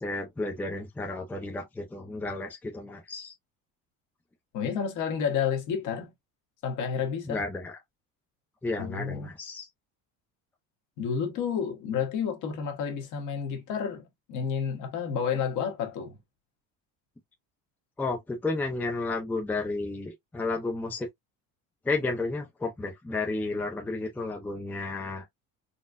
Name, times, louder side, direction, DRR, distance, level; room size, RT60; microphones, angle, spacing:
voice 1, 0.0-3.3 7.3-7.8 8.6-9.7 18.0-21.1 21.8-25.2, left 3 dB, 5° left, 0.6 m, -32 dB
voice 2, 4.5-6.1 6.6-7.4 8.8-9.3 11.0-16.2, left 7 dB, 55° left, 1.2 m, -30 dB
4.1 x 2.1 x 2.5 m
cardioid pair, 165°, 36 cm